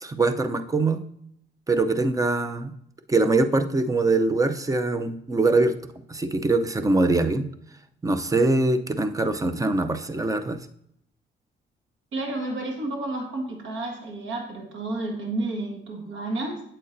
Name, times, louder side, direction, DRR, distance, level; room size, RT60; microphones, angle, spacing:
voice 1, 0.0-1.0 1.7-2.7 3.1-5.7 6.1-7.5 8.0-10.6, right 2 dB, 15° right, 9 dB, 0.6 m, -23 dB
voice 2, 12.1-16.6, right 2 dB, 75° right, 2 dB, 1.7 m, -31 dB
8.3 x 7.6 x 2.6 m, 0.72 s
cardioid pair, 90°, 20 cm